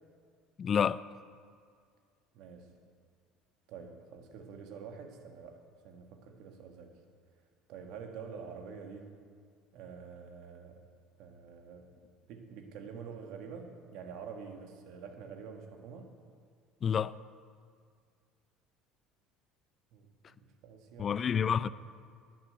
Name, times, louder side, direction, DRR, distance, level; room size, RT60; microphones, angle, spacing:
voice 1, 0.6-1.0 16.8-17.2 21.0-21.7, left 7 dB, 40° left, 0.4 m, -28 dB
voice 2, 2.3-2.7 3.7-6.9 7.7-9.2 9.7-10.8 11.2-16.1 19.9-21.7, right 6 dB, 70° right, 1.8 m, -47 dB
11.5 x 8.7 x 8.1 m
hypercardioid pair, 80°, 0 cm